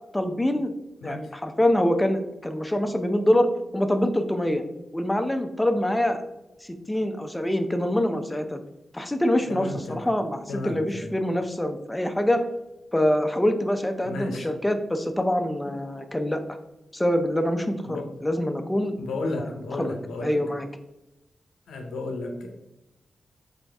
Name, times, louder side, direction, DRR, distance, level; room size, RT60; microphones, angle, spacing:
voice 1, 0.1-0.7 1.0-4.6 4.9-6.2 6.9-8.6 8.9-12.5 12.9-16.4 16.9-19.0 19.3-19.5 19.8-19.9 20.2-20.7, left 1 dB, 15° left, 7 dB, 0.6 m, -25 dB
voice 2, 9.5-10.1 10.5-11.2 14.0-14.5 17.8-18.1 19.0-20.4 21.7-22.5, left 2 dB, 85° left, 3 dB, 0.7 m, -33 dB
3.9 x 3.6 x 3.4 m, 0.93 s
supercardioid pair, 40°, 0 cm